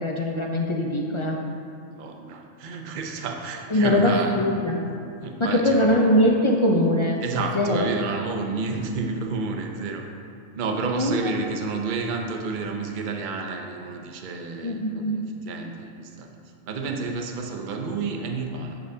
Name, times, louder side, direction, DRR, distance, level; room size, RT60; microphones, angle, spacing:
voice 1, 0.0-1.4 3.7-4.8 5.4-7.2 7.5-7.8 10.9-11.3 14.6-15.3, left 1 dB, 35° left, 0 dB, 0.5 m, -22 dB
voice 2, 1.9-4.3 5.2-6.1 7.2-10.1 10.6-16.3 16.7-18.8, right 4 dB, 50° right, 3 dB, 0.7 m, -30 dB
9.7 x 7.9 x 2.7 m, 2.4 s
omnidirectional pair, 1.3 m